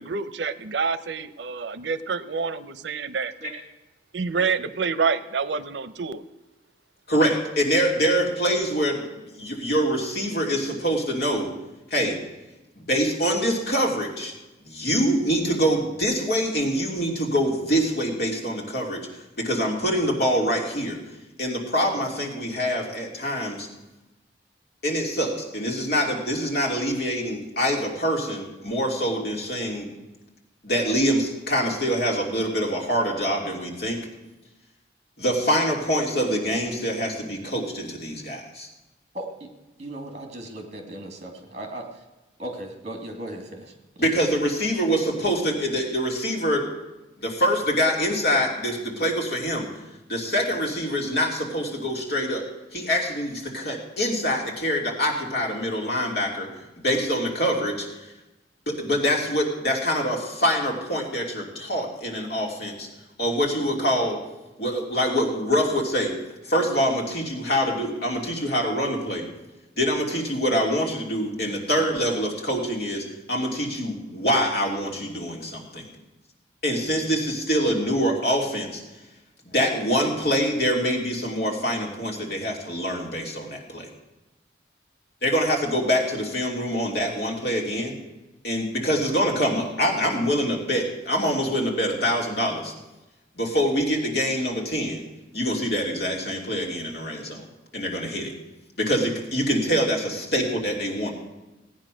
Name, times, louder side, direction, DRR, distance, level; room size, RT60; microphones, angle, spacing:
voice 1, 0.0-3.3 4.1-6.2, right 5 dB, 80° right, 0.6 m, -27 dB
voice 2, 7.1-11.5 11.9-12.2 12.8-14.3 14.6-19.0 19.4-21.0 21.4-23.7 24.8-29.9 30.6-34.0 35.2-38.7 44.0-46.7 47.2-49.7 50.1-52.4 52.7-56.5 56.8-58.1 58.7-62.9 63.2-64.2 64.6-66.1 66.4-69.2 69.8-75.9 76.6-78.8 79.4-83.9 85.2-87.9 88.4-92.7 93.3-95.0 95.3-97.4 97.7-98.3 98.8-101.1, equal, 60° left, 3.0 m, -25 dB
voice 3, 39.1-39.5 39.8-41.9 42.4-43.7 44.0-44.1, right 1 dB, 40° right, 2.4 m, -36 dB
17.0 x 9.5 x 6.3 m
head